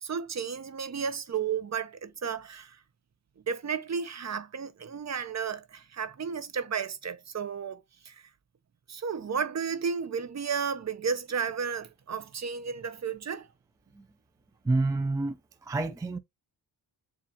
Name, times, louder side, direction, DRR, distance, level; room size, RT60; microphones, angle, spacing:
voice 1, 0.0-2.8 3.5-8.3 8.9-13.5, right 6 dB, 45° right, 0.6 m, -33 dB
voice 2, 14.6-15.4 15.6-16.2, right 2 dB, 10° right, 0.3 m, -28 dB
7.3 x 2.4 x 2.8 m
wide cardioid pair, 100°, 40 cm